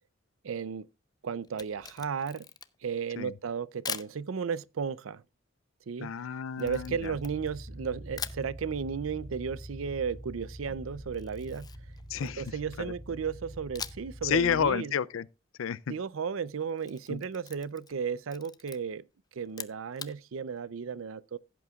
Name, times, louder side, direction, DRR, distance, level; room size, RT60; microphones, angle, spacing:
voice 1, 0.4-0.9 1.2-2.4 2.8-5.2 5.9-6.1 6.6-11.7 12.2-14.9 15.9-19.0 19.4-21.4, right 6 dB, 85° right, 0.5 m, -34 dB
Camera, 1.4-2.9 3.8-4.2 6.6-7.8 8.1-8.5 11.1-12.6 13.7-14.2 14.5-14.6 16.6-18.0 18.3-18.8 19.4-20.2, left 6 dB, 20° left, 0.5 m, -42 dB
voice 2, 6.0-7.1 12.1-12.9 14.2-15.3 15.6-15.9 17.1-17.2, left 7 dB, 85° left, 0.4 m, -30 dB
sound 1, 6.6-14.7, equal, 35° right, 4.1 m, -45 dB
15.5 x 8.4 x 2.3 m
head